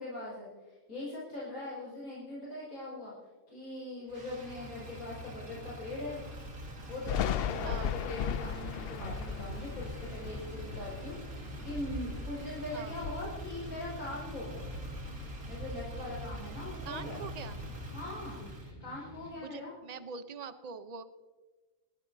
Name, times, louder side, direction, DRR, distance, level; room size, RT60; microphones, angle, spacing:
voice 1, 0.0-3.1 3.5-6.2 6.9-14.6 15.5-17.2 17.9-18.4 18.8-19.8, left 2 dB, 85° left, -6 dB, 5.9 m, -41 dB
Motor vehicle (road), 4.1-18.7, right 1 dB, 85° right, 2.5 m, -43 dB
Thunder, 7.1-12.5 12.9-14.3 14.6-16.3, left 9 dB, 65° left, 0.6 m, -38 dB
sound 1, 8.2-19.3, left 1 dB, 15° left, 4.9 m, -53 dB
voice 2, 16.8-17.6 19.3-21.0, right 6 dB, 35° right, 10 dB, 0.7 m, -43 dB
27.5 x 13.0 x 2.7 m, 1.3 s
omnidirectional pair, 1.5 m